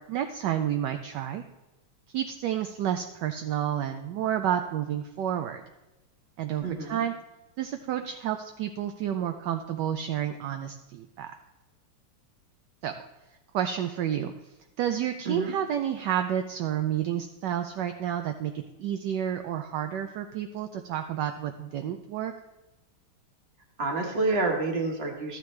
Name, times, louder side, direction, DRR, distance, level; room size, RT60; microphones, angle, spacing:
voice 1, 0.0-1.4 2.1-5.6 6.4-7.1 7.6-11.3 12.8-12.9 13.5-14.3 14.8-22.3, right 10 dB, 75° right, 7 dB, 1.0 m, -30 dB
voice 2, 6.6-7.0 15.2-15.6 23.8-25.4, right 3 dB, 35° right, 2 dB, 1.4 m, -28 dB
13.0 x 9.2 x 3.2 m, 1.0 s
omnidirectional pair, 2.3 m